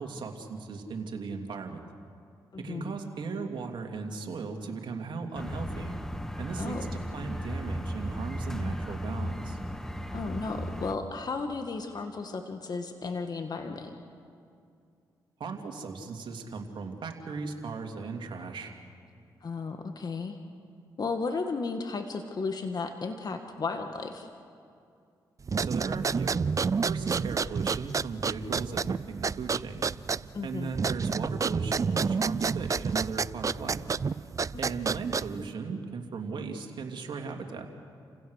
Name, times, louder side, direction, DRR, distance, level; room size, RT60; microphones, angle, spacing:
voice 1, 0.0-1.8 2.6-5.9 6.4-9.6 15.4-18.7 25.6-26.5 26.8-29.9 30.4-33.8 34.6-37.7, right 4 dB, 65° right, 2 dB, 2.7 m, -37 dB
voice 2, 2.5-2.9 6.6-6.9 10.1-13.9 19.4-20.4 21.0-24.3 30.3-30.7 34.5-34.7, left 4 dB, 50° left, 6 dB, 1.7 m, -34 dB
sound 1, 5.3-10.9, equal, 5° left, 1.4 m, -35 dB
sound 2, 25.4-35.5, right 5 dB, 40° right, 0.5 m, -29 dB
30.0 x 16.5 x 6.5 m, 2.4 s
supercardioid pair, 55°, 9 cm